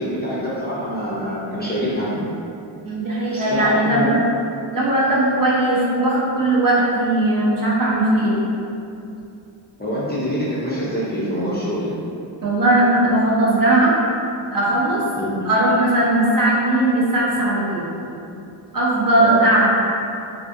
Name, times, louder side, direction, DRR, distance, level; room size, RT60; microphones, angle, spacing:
voice 1, 0.0-2.2 3.2-4.1 9.8-11.9 15.2-15.4 19.2-19.4, equal, 20° left, -9 dB, 0.4 m, -25 dB
voice 2, 2.8-4.2 4.7-8.4 12.4-13.9 14.5-15.0 15.4-17.8 18.7-19.7, right 1 dB, 45° right, -6 dB, 0.6 m, -18 dB
2.6 x 2.3 x 2.5 m, 2.6 s
wide cardioid pair, 110°, 47 cm